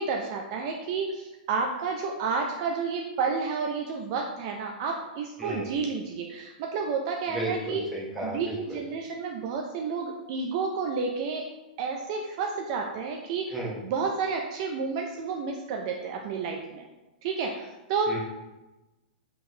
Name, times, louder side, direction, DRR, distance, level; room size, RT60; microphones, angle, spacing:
voice 1, 0.0-7.8 8.2-11.4 11.8-13.5 13.8-16.8 17.2-18.1, right 5 dB, 35° right, 2 dB, 0.3 m, -30 dB
voice 2, 5.4-5.8 7.3-8.8 13.5-13.8 18.1-18.2, right 1 dB, ahead, -7 dB, 0.9 m, -34 dB
4.3 x 3.8 x 2.7 m, 1.1 s
hypercardioid pair, 170°, 5 cm